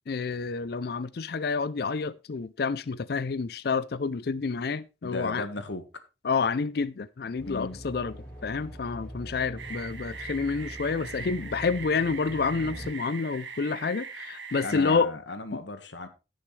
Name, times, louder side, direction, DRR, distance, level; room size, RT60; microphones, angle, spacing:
voice 1, 0.1-5.5 6.2-8.1 8.4-15.1 15.5-15.6, left 4 dB, 55° left, 0.4 m, -29 dB
voice 2, 5.0-5.8 7.4-7.8 14.6-16.1, left 2 dB, 75° left, 1.5 m, -36 dB
sound 1, 7.4-12.9, equal, 10° left, 4.1 m, -43 dB
sound 2, 9.6-15.0, right 5 dB, 70° right, 1.8 m, -41 dB
16.0 x 6.5 x 3.2 m
head